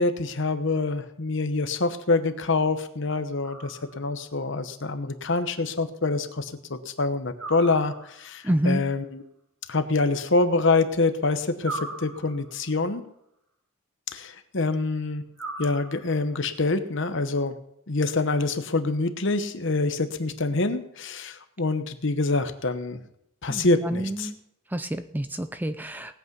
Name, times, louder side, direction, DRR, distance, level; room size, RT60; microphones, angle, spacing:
voice 1, 0.0-9.2 9.7-13.0 14.1-15.2 15.6-17.6 17.9-23.0 23.4-24.3, left 3 dB, 55° left, 9 dB, 1.0 m, -26 dB
sound 1, 3.4-4.3 7.4-8.4 11.6-12.7 15.3-16.3, right 3 dB, 90° right, 4.5 m, -39 dB
voice 2, 8.4-8.8 23.5-24.4 24.7-26.1, right 1 dB, 10° right, 10 dB, 0.4 m, -28 dB
18.5 x 8.3 x 5.4 m, 0.78 s
head